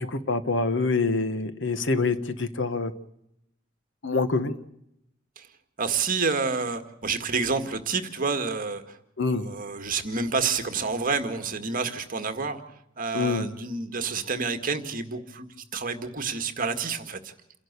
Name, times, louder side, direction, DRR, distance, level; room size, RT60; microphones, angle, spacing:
voice 1, 0.0-2.9 4.0-4.6 9.2-9.5 13.1-13.5, left 3 dB, 60° left, 11 dB, 1.4 m, -26 dB
voice 2, 5.8-9.0 9.3-12.6 13.0-17.3, right 4 dB, 45° right, 7 dB, 1.9 m, -29 dB
28.5 x 11.5 x 8.2 m, 0.79 s
head